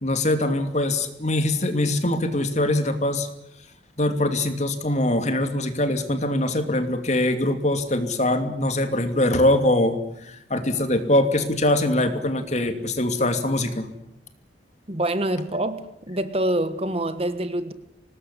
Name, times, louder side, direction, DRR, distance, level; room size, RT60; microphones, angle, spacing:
voice 1, 0.0-3.3 4.0-13.9, left 1 dB, 40° left, 8 dB, 2.8 m, -23 dB
voice 2, 14.9-17.7, right 1 dB, 35° right, 11 dB, 1.5 m, -26 dB
24.5 x 20.0 x 9.9 m, 0.79 s
head